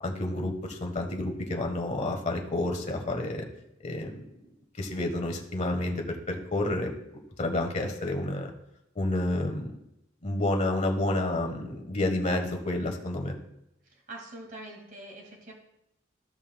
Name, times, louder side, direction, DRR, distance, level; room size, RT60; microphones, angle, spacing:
voice 1, 0.0-3.5 3.8-4.2 4.8-8.5 8.9-9.8 10.2-13.3, left 2 dB, 40° left, 3 dB, 1.3 m, -30 dB
voice 2, 13.8-15.5, right 2 dB, 45° right, -1 dB, 2.0 m, -44 dB
15.0 x 5.6 x 2.2 m, 0.82 s
head